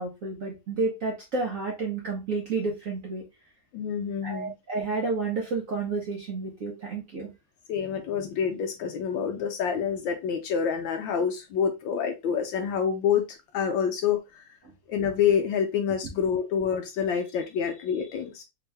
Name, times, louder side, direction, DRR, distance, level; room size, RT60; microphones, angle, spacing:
voice 1, 0.0-3.2 4.2-7.3, right 3 dB, 60° right, 0.9 m, -30 dB
voice 2, 3.7-4.5 7.7-13.3 13.5-14.4 14.9-18.4, left 7 dB, 75° left, 1.2 m, -27 dB
3.5 x 2.9 x 3.2 m
omnidirectional pair, 2.4 m